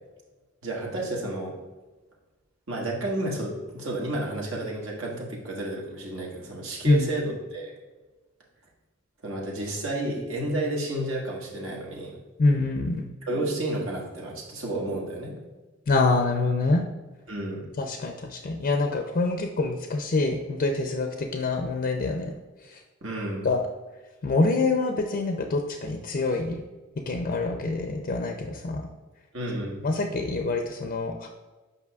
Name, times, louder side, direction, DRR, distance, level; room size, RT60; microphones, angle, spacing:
voice 1, 0.6-1.5 2.7-7.7 9.2-12.1 13.3-15.3 17.3-17.7 23.0-23.5 29.3-29.8, right 1 dB, 75° right, -2 dB, 1.5 m, -31 dB
voice 2, 12.4-13.0 15.9-16.8 17.8-22.3 22.6-22.8 23.4-23.6 24.2-26.6 27.1-28.8 29.8-31.3, left 3 dB, 45° left, 3 dB, 0.5 m, -25 dB
8.2 x 5.4 x 2.3 m, 1.2 s
head